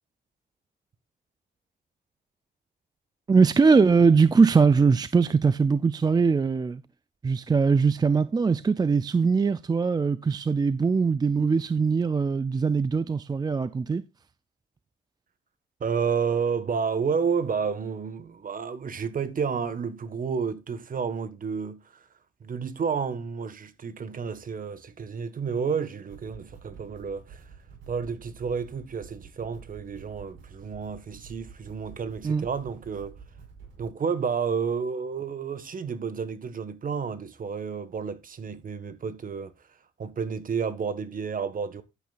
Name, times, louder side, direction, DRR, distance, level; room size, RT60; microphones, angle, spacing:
voice 1, 3.3-6.8 7.2-14.0 32.2-32.5, right 5 dB, 20° right, 0.4 m, -21 dB
voice 2, 15.8-22.0 22.4-27.4 27.9-33.2 33.8-39.5 40.0-41.8, right 6 dB, 45° right, 1.5 m, -30 dB
sound 1, 25.7-25.8 26.1-33.9, right 5 dB, 80° right, 5.4 m, -49 dB
11.5 x 9.2 x 2.5 m
cardioid pair, 90°, 20 cm